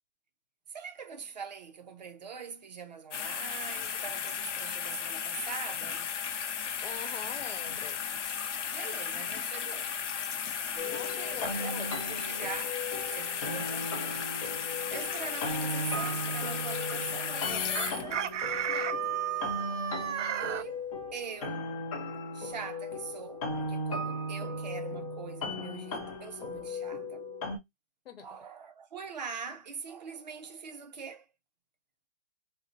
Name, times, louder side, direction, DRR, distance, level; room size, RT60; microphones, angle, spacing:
voice 1, 0.7-6.1 8.7-9.9 10.7-14.5 14.9-19.0 20.2-21.7 22.3-27.2 28.2-31.3, right 6 dB, 40° right, 0.5 m, -43 dB
sound 1, 3.1-18.4 18.9-19.0, left 7 dB, 85° left, 0.7 m, -35 dB
voice 2, 6.8-8.0 10.8-12.0 28.0-28.3, left 7 dB, 55° left, 1.0 m, -43 dB
sound 2, 10.8-27.6, left 1 dB, 30° left, 0.7 m, -37 dB
Chicken rooster, 17.7-20.6, right 9 dB, 85° right, 0.6 m, -33 dB
4.0 x 2.1 x 2.5 m
hypercardioid pair, 170°, 35 cm